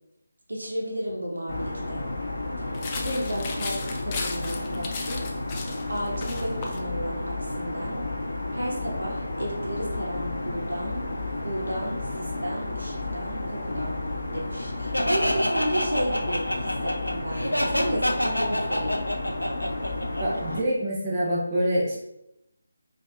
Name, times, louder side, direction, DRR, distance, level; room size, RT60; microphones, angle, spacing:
voice 1, 0.5-2.1 2.8-5.3 5.9-8.1 8.5-11.1 11.4-14.0 14.3-19.0, equal, 70° right, -2 dB, 0.9 m, -33 dB
sound 1, 1.5-20.6, left 2 dB, 55° left, 0.8 m, -32 dB
sound 2, 2.7-6.8, left 4 dB, 25° left, 0.3 m, -36 dB
Laughter, 14.9-20.6, equal, 90° left, 0.5 m, -27 dB
voice 2, 20.2-22.0, equal, 15° right, -8 dB, 0.9 m, -25 dB
4.2 x 2.6 x 2.5 m, 0.84 s
figure-of-eight pair, 155°, 0 cm